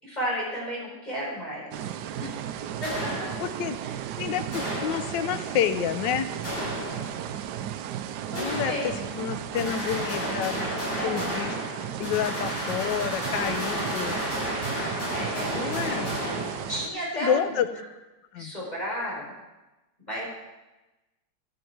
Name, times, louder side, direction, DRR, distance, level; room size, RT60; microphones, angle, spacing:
voice 1, 0.0-1.7 2.2-2.3 2.8-3.1 3.8-4.0 8.3-8.8 9.2-9.4 10.6-11.3 12.2-12.3 12.8-12.9 13.4-13.9 15.1-16.1 16.7-17.6 18.3-19.3 20.1-20.2, equal, 20° left, -5 dB, 4.7 m, -33 dB
sound 1, 1.7-16.9, right 10 dB, 75° right, 0.9 m, -35 dB
sound 2, 2.8-3.8 4.5-5.5 6.4-7.4 8.4-9.3 9.6-17.1, equal, 55° left, 5.8 m, -33 dB
voice 2, 3.4-3.8 4.2-6.3 8.3-10.6 11.0-11.5 12.0-14.2 15.5-16.1 17.2-17.7 18.3-18.5, left 9 dB, 70° left, 11 dB, 1.2 m, -29 dB
11.5 x 9.5 x 4.7 m, 1.1 s
omnidirectional pair, 2.2 m